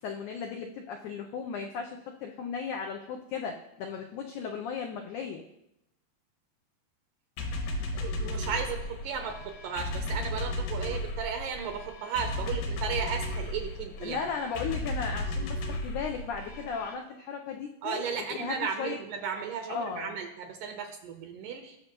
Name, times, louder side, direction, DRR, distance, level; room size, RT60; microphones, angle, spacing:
voice 1, 0.0-5.4 14.0-19.0 19.7-20.2, left 6 dB, 85° left, 3 dB, 1.7 m, -36 dB
sound 1, 7.4-16.9, left 1 dB, 70° left, 2.7 m, -34 dB
voice 2, 7.9-14.3 17.8-21.8, right 6 dB, 75° right, 4 dB, 2.1 m, -35 dB
19.0 x 6.4 x 3.0 m, 0.85 s
omnidirectional pair, 4.4 m